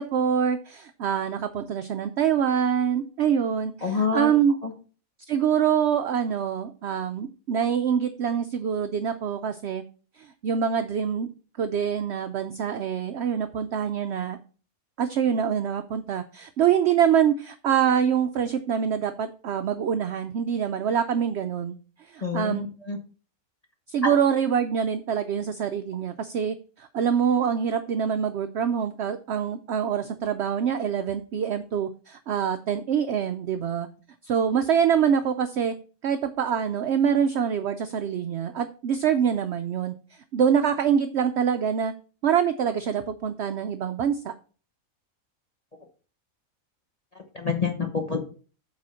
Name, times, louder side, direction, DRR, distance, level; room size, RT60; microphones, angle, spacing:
voice 1, 0.0-4.5 5.3-9.8 10.2-11.3 11.6-14.4 15.0-22.6 23.9-33.9 34.2-35.7 36.0-39.9 40.3-41.9 42.2-44.3, right 8 dB, 65° right, 9 dB, 0.7 m, -25 dB
voice 2, 3.8-4.3 4.6-4.7 22.2-23.0 24.0-24.1 47.1-48.2, left 4 dB, 30° left, 2 dB, 0.9 m, -27 dB
7.8 x 4.1 x 5.6 m, 0.38 s
omnidirectional pair, 1.5 m